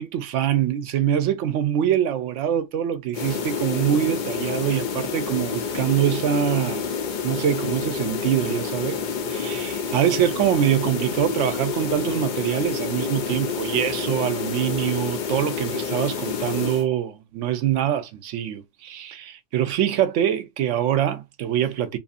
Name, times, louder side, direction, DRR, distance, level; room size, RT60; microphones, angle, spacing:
voice 1, 0.0-6.8 7.2-9.0 9.3-22.0, right 10 dB, 75° right, 0.9 m, -24 dB
sound 1, 3.1-16.9, left 6 dB, 65° left, 0.4 m, -28 dB
2.7 x 2.4 x 2.4 m
omnidirectional pair, 1.3 m